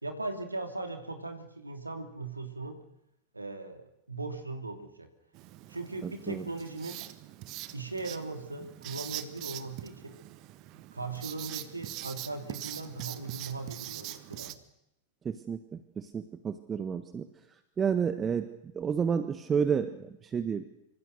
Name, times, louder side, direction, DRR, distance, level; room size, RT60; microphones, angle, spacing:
voice 1, 0.0-2.8 3.3-5.1 5.7-7.0 7.7-10.1 10.9-14.6, right 3 dB, 80° right, 6 dB, 3.1 m, -39 dB
Writing, 5.3-14.5, right 16 dB, 40° right, 1.5 m, -43 dB
voice 2, 6.0-6.4 15.2-17.3 17.8-18.5 18.7-20.6, right 7 dB, 20° right, 10 dB, 1.6 m, -30 dB
26.0 x 25.0 x 6.7 m, 0.83 s
figure-of-eight pair, 90°, 0 cm